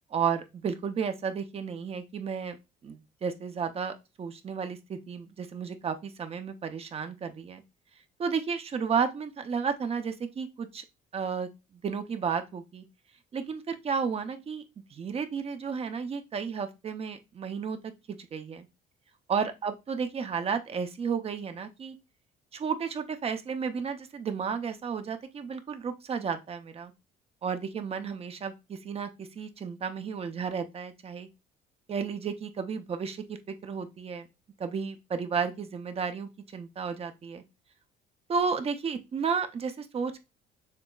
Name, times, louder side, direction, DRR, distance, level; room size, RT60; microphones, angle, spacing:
voice 1, 0.1-2.6 2.8-7.6 8.2-10.8 11.1-11.5 11.8-12.8 13.3-14.6 14.9-18.7 19.3-21.9 22.5-26.9 27.4-31.3 31.9-34.3 34.6-37.4 38.3-40.2, right 6 dB, 35° right, 8 dB, 0.7 m, -32 dB
6.7 x 2.9 x 2.3 m, 0.25 s
cardioid pair, 110°, 17 cm